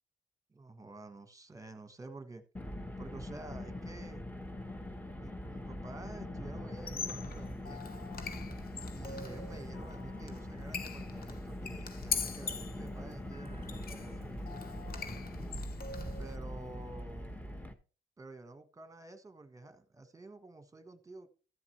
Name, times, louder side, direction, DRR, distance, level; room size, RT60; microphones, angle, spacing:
voice 1, 0.5-2.4 3.0-4.2 5.2-7.9 8.9-14.7 16.2-17.7 18.2-21.3, right 2 dB, 15° right, 1.4 m, -50 dB
Car, 2.5-17.7, left 1 dB, 10° left, 1.1 m, -42 dB
Squeak, 6.8-16.4, left 6 dB, 50° left, 1.1 m, -42 dB
14.0 x 7.2 x 3.3 m
cardioid pair, 90°, 20 cm